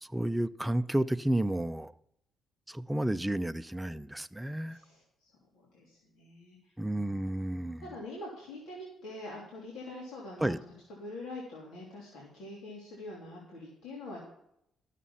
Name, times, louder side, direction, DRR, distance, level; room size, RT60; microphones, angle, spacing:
voice 1, 0.0-1.9 2.7-4.8 6.8-7.9 10.4-10.6, right 1 dB, 5° right, 0.5 m, -31 dB
voice 2, 5.5-6.6 7.8-10.7 11.0-14.2, left 2 dB, 85° left, 3.1 m, -44 dB
13.0 x 7.4 x 5.6 m
cardioid pair, 90°, 0 cm